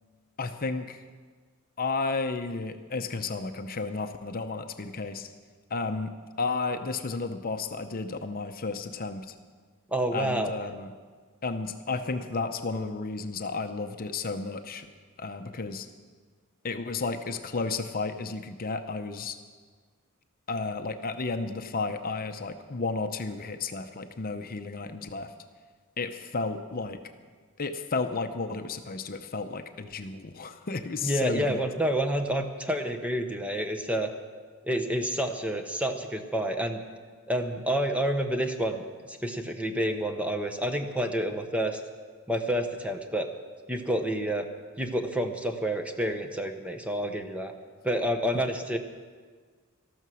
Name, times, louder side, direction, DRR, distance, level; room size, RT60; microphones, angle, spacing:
voice 1, 0.4-1.0 1.8-5.3 5.7-6.1 6.4-9.3 10.1-10.9 11.4-14.9 15.2-15.9 16.6-19.4 20.5-25.3 26.0-27.0 27.6-31.6, left 3 dB, 40° left, 7 dB, 0.7 m, -32 dB
voice 2, 9.9-10.5 31.0-34.1 34.6-36.8 37.3-41.8 42.3-43.3 43.7-44.5 44.8-47.5 47.8-48.8, right 1 dB, 5° right, 6 dB, 0.9 m, -29 dB
13.5 x 12.5 x 6.3 m, 1.5 s
head